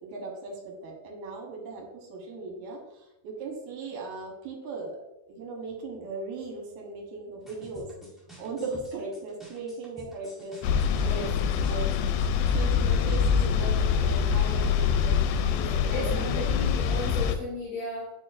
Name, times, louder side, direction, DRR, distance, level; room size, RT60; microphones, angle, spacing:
voice 1, 0.0-5.0 5.3-7.9 8.4-11.3 11.6-11.9 12.5-15.2 15.5-16.5, right 3 dB, 70° right, 0 dB, 2.0 m, -38 dB
Ambient frica melodia, 7.4-12.7, equal, ahead, 0.3 m, -49 dB
sound 1, 10.6-17.4, left 7 dB, 90° left, 2.5 m, -25 dB
voice 2, 15.6-18.1, left 1 dB, 30° left, -9 dB, 2.4 m, -35 dB
9.7 x 4.4 x 2.5 m, 0.93 s
omnidirectional pair, 4.3 m